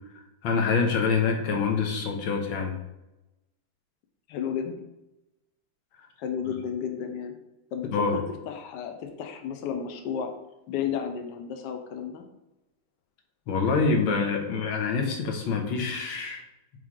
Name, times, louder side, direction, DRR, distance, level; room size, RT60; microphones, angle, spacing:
voice 1, 0.2-2.8 7.9-8.2 13.5-16.4, left 5 dB, 85° left, 2 dB, 1.8 m, -26 dB
voice 2, 4.3-4.8 6.2-7.3 7.7-10.3 10.7-12.2, left 7 dB, 70° left, 5 dB, 1.2 m, -33 dB
8.5 x 3.3 x 3.7 m, 0.95 s
omnidirectional pair, 2.2 m